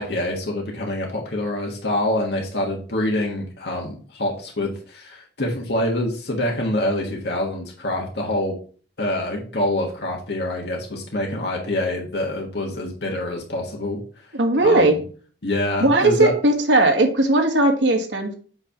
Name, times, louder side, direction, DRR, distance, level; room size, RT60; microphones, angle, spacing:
voice 1, 0.0-8.5 9.0-14.0 14.6-15.0 15.4-16.3, left 1 dB, 65° left, -1 dB, 1.5 m, -26 dB
voice 2, 14.3-14.9 15.8-18.3, right 2 dB, 90° right, 4 dB, 1.5 m, -18 dB
7.9 x 3.4 x 5.8 m, 0.42 s
head